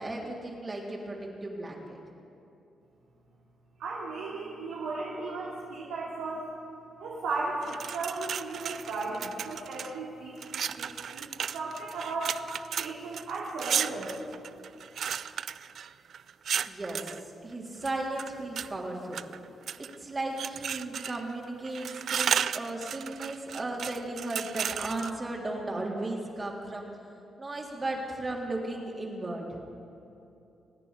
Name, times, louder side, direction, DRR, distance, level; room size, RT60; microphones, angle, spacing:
voice 1, 0.0-2.0 16.7-19.2 20.0-26.9 27.4-29.4, right 2 dB, 35° right, -2 dB, 3.5 m, -35 dB
voice 2, 3.8-6.5 7.0-11.3 11.5-12.3 12.8-14.2, right 3 dB, 80° right, -6 dB, 2.7 m, -35 dB
sound 1, 7.6-9.9 10.4-17.2 17.8-18.7 19.1-20.0 20.4-21.3 21.6-25.1, right 8 dB, 65° right, 0.4 m, -34 dB
26.5 x 9.8 x 5.3 m, 2.8 s
supercardioid pair, 50°, 0 cm